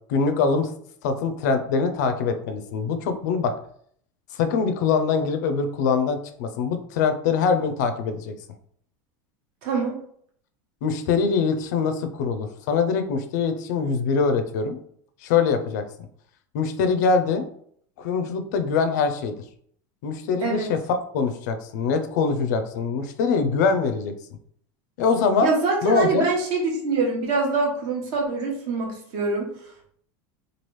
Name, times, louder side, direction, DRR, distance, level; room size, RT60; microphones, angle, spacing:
voice 1, 0.1-0.7 1.0-3.5 4.4-8.3 10.8-14.8 15.2-15.8 16.5-17.4 18.0-19.3 20.0-20.8 21.1-24.1 25.0-25.5 25.8-26.2, left 5 dB, 65° left, 7 dB, 0.4 m, -23 dB
voice 2, 9.6-10.0 20.4-20.7 25.4-29.5, right 3 dB, 40° right, 0 dB, 0.9 m, -24 dB
3.1 x 2.3 x 3.0 m, 0.63 s
supercardioid pair, 180°, 10 cm